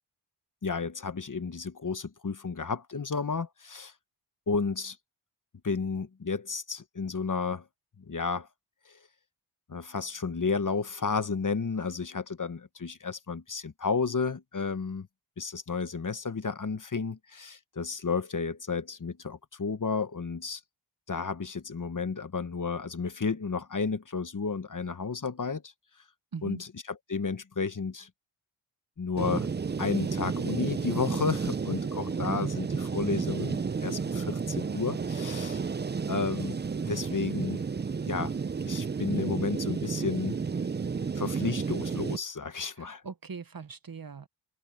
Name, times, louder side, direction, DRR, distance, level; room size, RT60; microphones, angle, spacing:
voice 1, 0.6-3.9 4.5-5.0 5.6-7.6 8.1-8.5 8.9-9.0 9.7-15.1 15.4-20.6 21.1-25.7 26.4-26.7 27.1-28.1 29.0-29.5 29.8-35.6 36.1-36.6 36.9-37.6 38.1-38.3 38.7-40.4 41.2-43.0, left 5 dB, 40° left, 1.0 m, -32 dB
voice 2, 26.3-26.6 32.3-32.7 42.8-44.3, right 5 dB, 45° right, 1.0 m, -41 dB
sound 1, 29.2-42.2, right 5 dB, 25° right, 0.4 m, -32 dB
wide cardioid pair, 80°, 49 cm